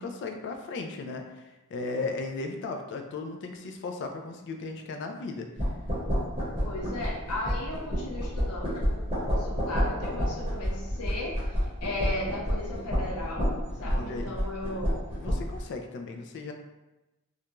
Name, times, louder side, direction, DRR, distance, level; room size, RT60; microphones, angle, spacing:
voice 1, 0.0-1.4 1.7-5.5 13.8-14.3 15.2-16.5, left 3 dB, 55° left, 4 dB, 0.3 m, -36 dB
sound 1, 5.6-15.6, equal, 25° right, 0.8 m, -30 dB
voice 2, 6.6-13.5 13.8-15.0, left 1 dB, 90° left, -3 dB, 0.8 m, -36 dB
2.4 x 2.2 x 2.9 m, 1.0 s
head